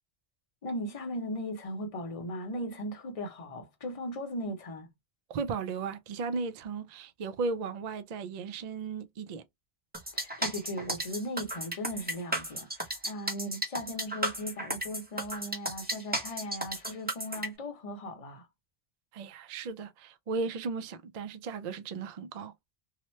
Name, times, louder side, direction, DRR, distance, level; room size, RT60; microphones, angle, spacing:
voice 1, 0.6-4.9 10.1-18.5, equal, 35° left, 0.8 m, -38 dB
voice 2, 5.3-9.4 19.1-22.5, right 4 dB, 55° right, 0.5 m, -35 dB
sound 1, 9.9-17.5, right 1 dB, 10° right, 0.7 m, -34 dB
2.8 x 2.1 x 3.1 m
omnidirectional pair, 1.1 m